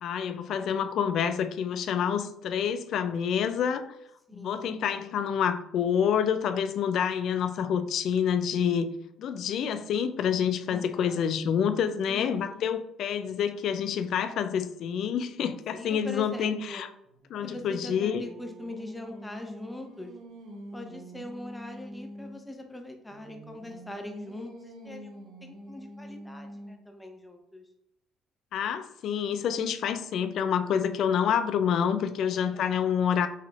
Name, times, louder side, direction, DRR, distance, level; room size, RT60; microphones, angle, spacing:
voice 1, 0.0-3.9 4.3-8.9 9.2-16.9 17.3-18.2 28.5-33.3, left 8 dB, 65° left, 0.3 m, -28 dB
voice 2, 4.3-4.8 10.7-11.5 12.1-12.6 15.7-16.8 17.4-20.1 20.7-27.6 32.1-33.0, left 1 dB, 10° left, 0.8 m, -42 dB
Singing, 17.1-22.5 23.1-27.0, right 1 dB, 70° right, 0.8 m, -46 dB
5.7 x 3.1 x 2.4 m
cardioid pair, 110°, 0 cm